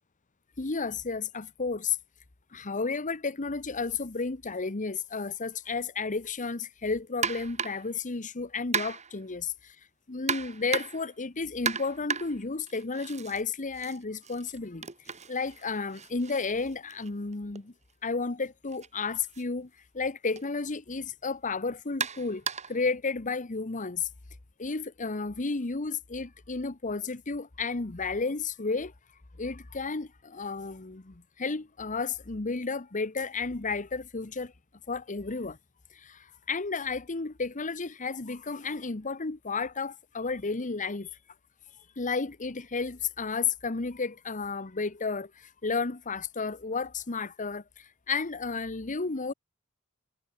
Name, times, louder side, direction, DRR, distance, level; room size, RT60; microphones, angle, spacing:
voice 1, 0.6-2.0 2.5-9.7 10.1-14.9 15.3-17.7 18.0-24.1 24.6-28.9 29.4-34.5 34.9-35.6 35.9-41.1 42.0-49.3, left 4 dB, 35° left, 1.0 m, -32 dB
sound 1, 7.2-7.9 8.7-9.2 10.3-11.1 11.6-13.4 13.7-17.6 18.7-18.9 19.3-19.4 20.4-20.5 22.0-22.8, right 6 dB, 30° right, 2.5 m, -35 dB
head